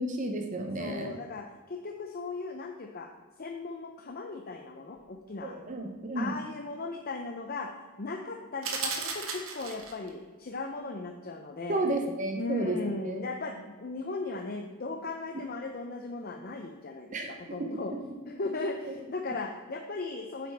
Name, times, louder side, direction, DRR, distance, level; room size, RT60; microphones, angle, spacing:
voice 1, 0.0-1.2 5.4-6.4 11.7-13.2 17.1-17.3 18.9-19.0, right 1 dB, 35° right, 3 dB, 0.7 m, -32 dB
voice 2, 0.8-3.1 3.4-5.6 6.1-7.7 8.0-11.8 12.4-17.1 17.5-17.9 18.3-20.5, left 3 dB, 40° left, 4 dB, 0.6 m, -37 dB
sound 1, 8.6-10.1, right 5 dB, 70° right, 1.4 m, -35 dB
9.0 x 7.7 x 3.4 m, 1.5 s
head